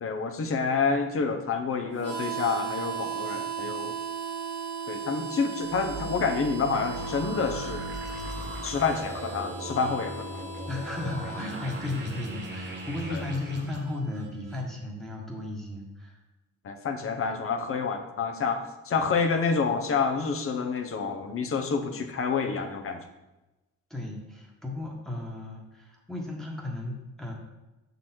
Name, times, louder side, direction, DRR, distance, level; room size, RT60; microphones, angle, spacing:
voice 1, 0.0-3.9 4.9-7.8 8.6-10.4 13.1-13.2 16.6-23.0, left 5 dB, 45° left, 6 dB, 0.8 m, -28 dB
Harmonica, 2.0-14.6, right 5 dB, 55° right, 1.3 m, -37 dB
sound 1, 5.6-13.8, right 2 dB, 40° right, 1.4 m, -39 dB
voice 2, 10.7-16.2 19.0-19.1 21.8-21.9 23.9-27.3, left 2 dB, ahead, -2 dB, 1.3 m, -35 dB
6.2 x 4.0 x 4.4 m, 1.0 s
cardioid pair, 90°, 30 cm